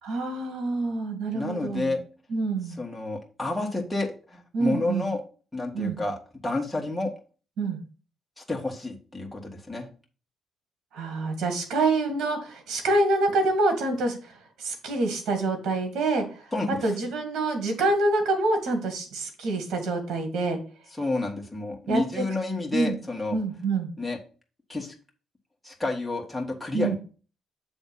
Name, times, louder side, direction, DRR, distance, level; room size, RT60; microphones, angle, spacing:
voice 1, 0.0-1.9 2.3-2.8 4.5-5.0 5.7-5.9 7.6-7.8 10.9-14.3 14.6-20.6 21.9-22.2 22.7-23.0 23.3-23.9 26.7-27.0, right 2 dB, 75° right, 5 dB, 2.1 m, -26 dB
voice 2, 1.3-2.0 2.8-5.2 5.5-6.2 6.4-7.1 8.4-9.9 16.5-16.8 21.0-23.4 24.0-24.2 24.7-24.9 25.6-27.0, left 2 dB, 5° left, 0 dB, 1.8 m, -30 dB
7.2 x 3.5 x 5.4 m, 0.37 s
cardioid pair, 90°, 0 cm